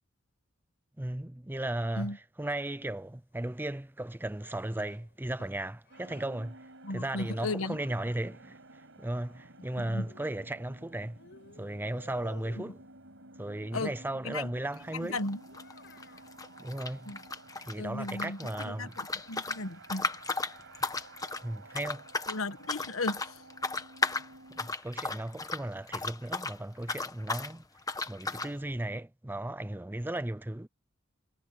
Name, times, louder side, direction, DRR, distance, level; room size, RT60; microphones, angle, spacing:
voice 1, 1.0-11.2 11.6-12.8 13.4-15.2 16.6-17.1 17.6-19.0 21.4-22.0 24.6-27.6 28.1-30.7, right 1 dB, 10° right, 0.6 m, -36 dB
Child speech kid speaking, 4.4-6.4 7.3-8.5 9.7-10.8 11.2-12.9 15.5-16.3, left 3 dB, 55° left, 7.0 m, -55 dB
sound 1, 5.9-24.7, right 2 dB, 65° right, 6.3 m, -54 dB
voice 2, 6.8-7.8 9.8-10.0 13.7-13.9 14.2-14.5 14.9-15.4 17.1-17.2 17.8-20.1 22.3-23.4, left 2 dB, 75° left, 1.4 m, -35 dB
sound 2, 14.7-14.9 15.2-17.7 18.0-26.6 26.8-27.5 27.9-28.5, left 3 dB, 15° left, 1.2 m, -35 dB
head